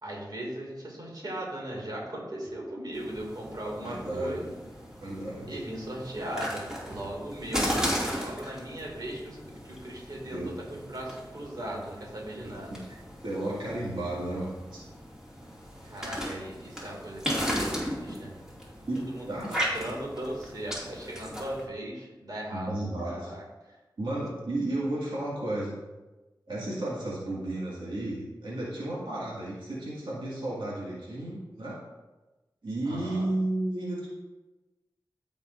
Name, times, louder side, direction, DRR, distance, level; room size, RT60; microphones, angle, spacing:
voice 1, 0.0-4.5 5.5-12.7 15.8-18.3 18.9-22.7 23.0-23.4 32.8-33.3, right 1 dB, 55° right, -3 dB, 2.4 m, -38 dB
sound 1, 2.9-21.6, equal, 10° right, 2.5 m, -36 dB
voice 2, 3.6-4.5 5.0-5.6 10.3-10.5 12.4-12.8 13.2-14.8 18.9-19.8 22.5-23.3 24.0-25.8 26.5-31.8 32.6-34.1, right 1 dB, 85° right, -6 dB, 2.1 m, -33 dB
15.0 x 5.3 x 2.6 m, 1.1 s
wide cardioid pair, 70°, 8 cm